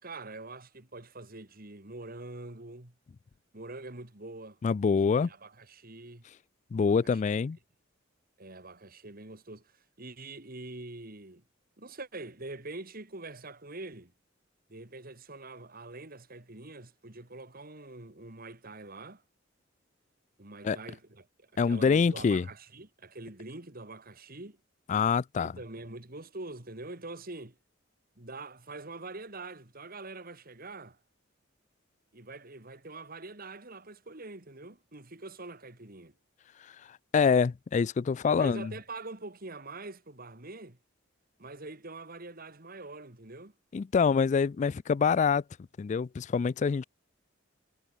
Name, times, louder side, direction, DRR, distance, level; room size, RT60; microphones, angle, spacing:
voice 1, 0.0-2.9 3.5-4.6 5.0-6.2 6.8-7.2 8.4-9.6 10.0-11.4 11.8-14.1 14.7-19.2 20.4-24.6 25.5-27.5 28.2-31.0 32.1-36.1 38.2-40.8 41.4-43.5, right 2 dB, 50° right, 2.8 m, -44 dB
voice 2, 4.6-5.3 6.7-7.6 20.6-20.8 21.6-22.5 24.9-25.5 36.6-38.7 43.7-45.4 45.8-46.8, left 5 dB, 40° left, 0.3 m, -26 dB
head